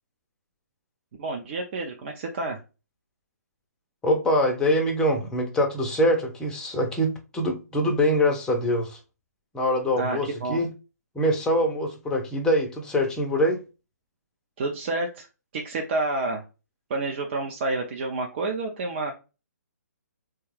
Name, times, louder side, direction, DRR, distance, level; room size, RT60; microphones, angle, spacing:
voice 1, 1.2-2.6 10.0-10.6 14.6-15.3 15.5-16.4 16.9-19.1, right 2 dB, 40° right, 0.6 m, -29 dB
voice 2, 4.0-9.0 9.5-10.7 11.1-13.6, equal, 5° left, 0.6 m, -24 dB
3.4 x 2.3 x 3.2 m
hypercardioid pair, 145°, 9 cm